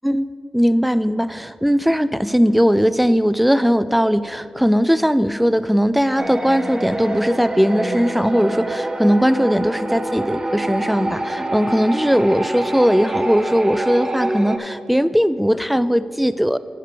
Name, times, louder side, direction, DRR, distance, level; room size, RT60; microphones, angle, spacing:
voice 1, 0.0-16.6, equal, ahead, 15 dB, 0.3 m, -18 dB
sound 1, 6.2-14.6, right 1 dB, 25° right, 0.8 m, -26 dB
9.1 x 4.8 x 6.7 m, 2.6 s
cardioid pair, 50°, 2 cm